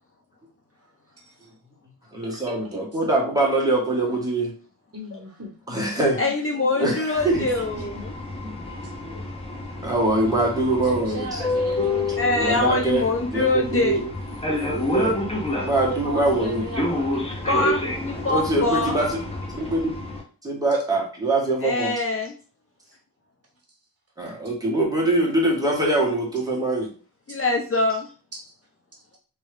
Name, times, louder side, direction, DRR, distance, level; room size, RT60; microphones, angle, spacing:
voice 1, 0.8-1.5 2.2-2.8 3.6-3.7 4.9-5.6 6.2-7.0 7.7-8.0 8.7-8.9 10.8-12.2 15.9-17.5 27.3-27.4 28.3-28.4, right 1 dB, 40° right, -1 dB, 1.3 m, -37 dB
voice 2, 2.1-4.5 5.7-6.2 6.8-7.5 8.4-8.5 9.0-9.2 9.8-11.4 12.3-13.0 13.3-14.0 14.7-15.2 15.6-16.7 18.3-19.2 19.6-20.0 20.4-21.9 24.2-26.9, right 2 dB, 10° right, -2 dB, 1.3 m, -23 dB
voice 3, 6.2-8.1 12.2-14.0 14.6-14.7 17.5-19.0 21.6-22.4 27.3-28.1, left 2 dB, 35° left, 1 dB, 0.6 m, -24 dB
sound 1, 7.1-20.2, left 1 dB, 15° left, 0.9 m, -29 dB
3.0 x 2.7 x 3.3 m, 0.38 s
cardioid pair, 90°, 39 cm